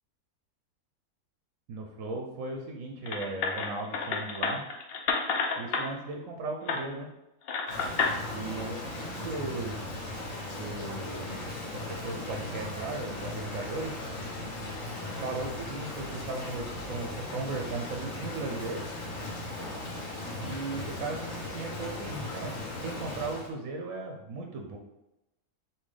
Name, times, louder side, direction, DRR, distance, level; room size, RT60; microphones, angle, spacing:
voice 1, 1.7-4.6 5.6-7.1 8.3-9.9 10.5-13.9 15.2-18.8 20.4-22.5 22.8-24.8, right 3 dB, 65° right, 1 dB, 0.9 m, -37 dB
sound 1, 3.1-5.8 6.7-6.8 7.5-8.1, left 5 dB, 80° left, 0.5 m, -30 dB
Rain, 7.7-23.5, left 2 dB, 60° left, 1.7 m, -37 dB
5.5 x 2.7 x 3.3 m, 0.93 s
omnidirectional pair, 1.7 m